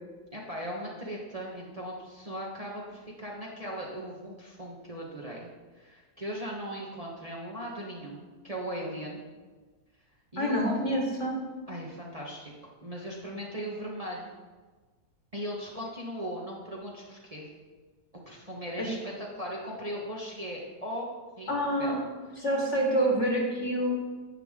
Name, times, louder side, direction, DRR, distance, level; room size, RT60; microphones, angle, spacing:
voice 1, 0.3-5.5 5.7-9.2 10.3-10.8 11.7-14.2 15.3-17.5 18.3-22.0, equal, 25° right, -3 dB, 1.2 m, -38 dB
voice 2, 10.4-11.4 18.8-18.9 21.5-22.0 22.4-23.9, right 1 dB, 45° left, -1 dB, 2.1 m, -27 dB
11.0 x 7.9 x 3.7 m, 1.3 s
omnidirectional pair, 1.7 m